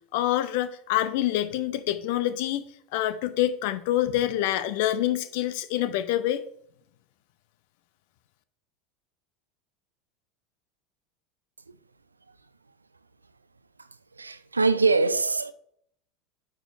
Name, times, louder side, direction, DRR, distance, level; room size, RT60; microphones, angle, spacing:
voice 1, 0.1-2.6 2.9-6.4, left 13 dB, 60° left, 0.5 m, -26 dB
voice 2, 14.2-15.5, right 3 dB, 85° right, 0.3 m, -23 dB
9.0 x 5.2 x 2.6 m
figure-of-eight pair, 80°, 0 cm